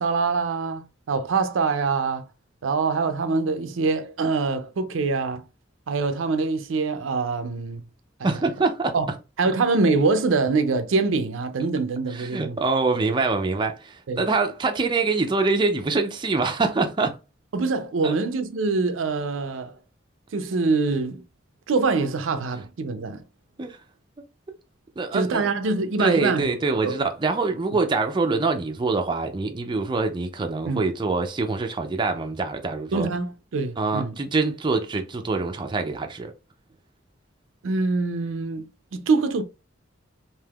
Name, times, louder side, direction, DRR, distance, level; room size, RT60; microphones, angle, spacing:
voice 1, 0.0-2.3 2.6-5.4 5.9-7.8 8.2-8.4 8.9-9.1 9.4-12.6 14.1-14.3 17.5-19.8 20.3-21.2 21.7-23.2 25.1-26.5 26.8-27.0 30.7-30.8 32.9-34.2 37.6-39.4, right 4 dB, 80° right, 0.5 m, -24 dB
voice 2, 8.2-8.9 12.1-17.1 18.0-18.1 23.6-23.8 25.0-25.4 26.0-33.1 33.8-36.3, right 3 dB, 25° right, 0.4 m, -24 dB
3.4 x 2.6 x 2.3 m
head